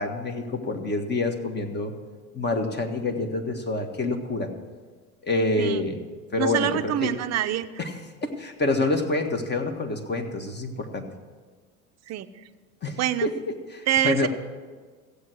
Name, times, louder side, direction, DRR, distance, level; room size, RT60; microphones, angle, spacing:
voice 1, 0.0-1.9 2.3-4.5 5.2-6.0 6.3-7.1 7.8-7.9 8.2-11.1 12.8-13.4 13.7-14.3, left 2 dB, 25° left, 5 dB, 1.7 m, -27 dB
voice 2, 6.4-7.7 12.1-12.3 13.0-13.3 13.9-14.3, right 11 dB, 35° right, 11 dB, 0.8 m, -25 dB
15.0 x 8.2 x 6.3 m, 1.5 s
hypercardioid pair, 80°, 44 cm